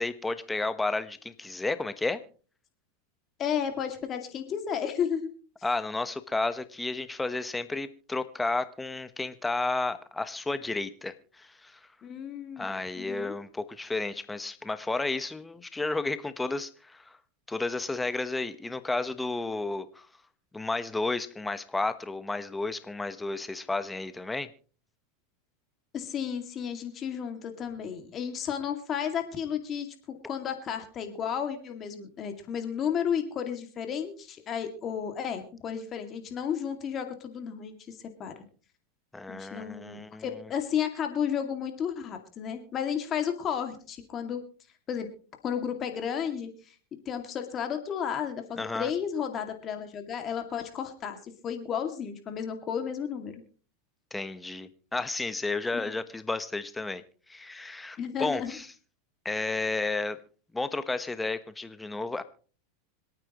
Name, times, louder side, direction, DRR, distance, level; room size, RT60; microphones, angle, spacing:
voice 1, 0.0-2.2 5.6-11.8 12.6-17.2 17.5-20.1 20.5-24.5 39.1-40.5 48.6-48.9 54.1-57.0 57.3-58.7 59.2-60.2 60.5-62.2, left 3 dB, 10° left, 12 dB, 1.1 m, -32 dB
voice 2, 3.4-5.3 12.0-13.3 25.9-38.3 39.3-44.4 44.9-45.1 45.4-46.5 47.1-53.4 58.0-58.6, left 8 dB, 35° left, 6 dB, 2.3 m, -33 dB
26.0 x 9.0 x 3.1 m, 0.39 s
supercardioid pair, 120°, 0 cm